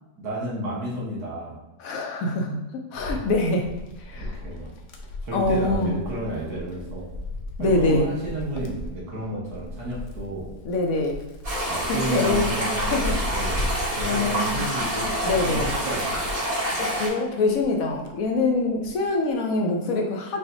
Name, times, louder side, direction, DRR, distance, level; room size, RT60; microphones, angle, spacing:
voice 1, 0.2-1.6 2.9-3.2 4.1-4.7 5.2-7.1 7.6-10.5 11.7-13.1 13.3-13.7 13.9-16.2, right 1 dB, 75° right, -4 dB, 1.8 m, -32 dB
voice 2, 1.8-2.6 2.9-3.7 4.0-4.3 5.3-6.0 7.6-8.1 10.7-11.2 11.9-12.5 12.8-13.2 14.0-14.6 15.2-15.7 16.8-20.4, left 2 dB, 70° left, 1 dB, 0.9 m, -24 dB
Wind, 3.0-17.1 17.5-19.0, left 1 dB, 90° left, 1.2 m, -35 dB
sound 1, 11.4-17.1, equal, 30° right, 1.3 m, -27 dB
5.6 x 2.5 x 2.7 m, 1.0 s
omnidirectional pair, 1.7 m